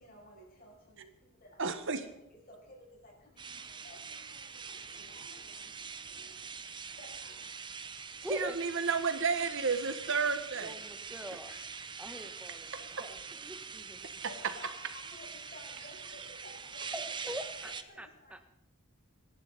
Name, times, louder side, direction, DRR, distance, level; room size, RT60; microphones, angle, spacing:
voice 1, 0.0-1.6 2.0-2.1 2.5-7.5 8.1-8.3 10.0-10.2 11.2-11.6 12.7-13.0 14.2-17.0 17.4-18.4, left 1 dB, 45° left, -2 dB, 7.6 m, -55 dB
voice 2, 1.6-2.1 8.3-10.7, right 5 dB, 60° right, 8 dB, 1.5 m, -31 dB
sound 1, 3.4-17.8, right 5 dB, 20° right, 0.8 m, -44 dB
voice 3, 8.2-8.6 10.6-11.5 12.0-14.2 16.9-18.4, right 1 dB, 5° right, 7 dB, 1.4 m, -44 dB
27.0 x 11.5 x 4.2 m, 0.84 s
head